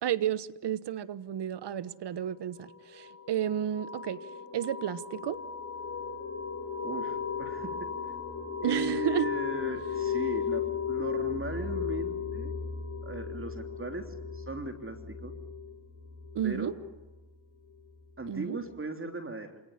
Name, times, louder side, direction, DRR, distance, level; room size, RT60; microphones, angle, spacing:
voice 1, 0.0-4.2 4.5-5.4 8.6-9.3 16.3-16.7 18.3-18.6, right 10 dB, 55° right, 17 dB, 1.3 m, -32 dB
sound 1, 2.6-17.0, left 7 dB, 30° left, 5.9 m, -36 dB
voice 2, 6.8-7.9 8.6-12.5 13.0-15.3 16.4-16.7 18.2-19.6, right 2 dB, 25° right, 6 dB, 3.3 m, -38 dB
27.5 x 18.5 x 9.9 m, 1.0 s
cardioid pair, 70°, 48 cm